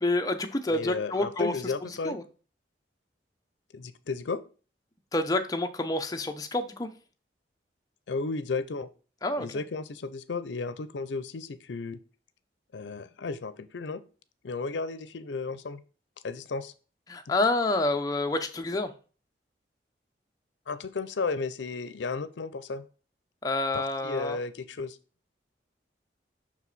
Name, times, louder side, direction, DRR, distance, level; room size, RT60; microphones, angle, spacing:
voice 1, 0.0-1.5 2.0-2.2 5.1-6.9 9.2-9.5 17.1-18.9 23.4-24.4, left 2 dB, 20° left, 6 dB, 0.6 m, -28 dB
voice 2, 0.7-2.2 3.7-4.4 8.1-8.9 9.4-12.0 12.7-14.0 14.4-15.8 16.2-16.7 20.7-22.9 23.7-25.0, left 4 dB, 80° left, 14 dB, 0.5 m, -33 dB
5.9 x 4.7 x 4.1 m, 0.37 s
head